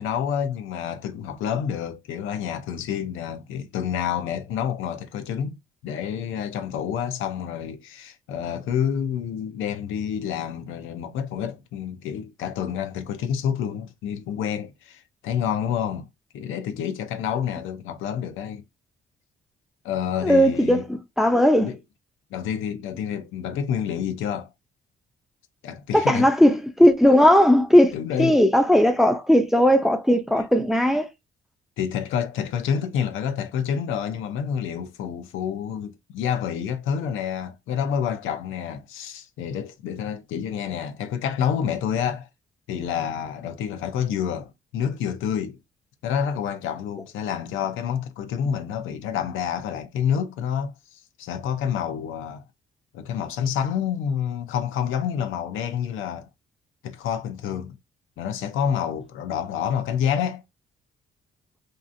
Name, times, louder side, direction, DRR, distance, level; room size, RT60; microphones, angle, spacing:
voice 1, 0.0-5.6 5.8-16.1 16.3-18.6 19.8-20.9 21.6-21.8 22.3-24.5 25.6-26.3 27.9-28.4 30.4-30.5 31.8-42.3 42.7-45.6 46.0-52.4 52.9-56.3 56.8-57.8 58.2-60.4, left 8 dB, 85° left, 0.5 m, -28 dB
voice 2, 20.2-21.7 25.9-31.1, equal, ahead, 0.4 m, -18 dB
2.7 x 2.4 x 2.5 m
cardioid pair, 90°, 20 cm